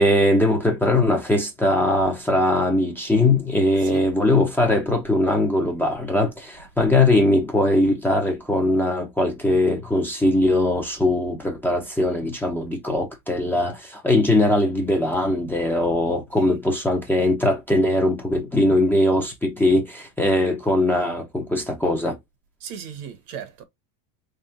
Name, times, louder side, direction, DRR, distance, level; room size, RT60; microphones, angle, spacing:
voice 1, 0.0-22.2, left 1 dB, 5° left, 0.8 m, -21 dB
voice 2, 22.6-23.6, right 8 dB, 60° right, 1.6 m, -37 dB
3.6 x 3.6 x 2.7 m
supercardioid pair, 150°, 49 cm